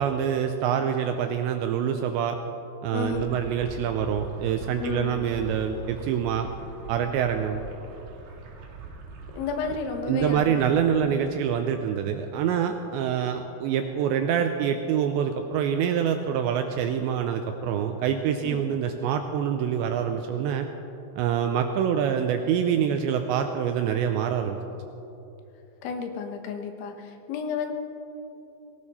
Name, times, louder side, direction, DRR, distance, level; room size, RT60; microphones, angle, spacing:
voice 1, 0.0-2.4 2.8-6.5 6.9-7.6 10.1-20.7 21.2-24.6, right 8 dB, 85° right, 6 dB, 2.5 m, -26 dB
voice 2, 2.9-3.4 4.8-5.2 9.3-10.8 11.0-11.1 18.4-18.6 25.8-27.7, left 5 dB, 75° left, 5 dB, 3.3 m, -32 dB
sound 1, 3.0-11.6, right 3 dB, 60° right, 3.7 m, -43 dB
19.0 x 17.0 x 4.2 m, 3.0 s
omnidirectional pair, 5.8 m